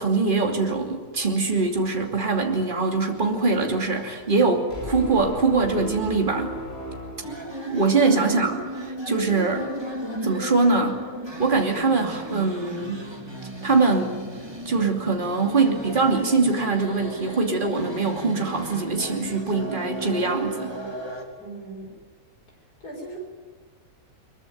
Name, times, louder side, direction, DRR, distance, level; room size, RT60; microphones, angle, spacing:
voice 1, 0.0-6.5 7.7-8.6 9.1-9.7 10.2-11.0 11.4-13.1 13.6-14.2 14.6-20.7, right 3 dB, 30° right, 2 dB, 2.9 m, -23 dB
sound 1, 4.7-8.2, equal, 40° left, 3.6 m, -36 dB
sound 2, 7.2-21.2, right 1 dB, 15° right, 3.1 m, -35 dB
voice 2, 8.2-8.5 9.1-9.4 21.4-21.9 22.8-23.2, right 1 dB, 80° left, 1 dB, 6.6 m, -38 dB
22.5 x 22.5 x 9.4 m, 1.4 s
omnidirectional pair, 1.6 m